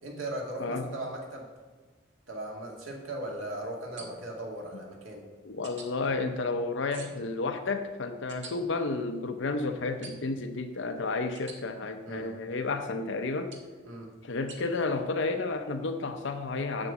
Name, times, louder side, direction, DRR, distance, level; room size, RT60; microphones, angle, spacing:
voice 1, 0.0-1.5 2.3-5.2 12.1-12.3 13.8-14.1, right 1 dB, 80° right, 0 dB, 2.0 m, -38 dB
voice 2, 0.6-0.9 4.7-4.8 5.4-13.6 14.2-16.9, left 3 dB, 60° left, 7 dB, 0.7 m, -31 dB
sound 1, 4.0-4.4 5.6-5.9 6.9-7.3 8.3-8.5 10.0-10.4 11.4-11.6 13.5-13.8 14.5-14.6, right 4 dB, 60° right, 1.6 m, -46 dB
7.5 x 7.3 x 8.2 m, 1.4 s
head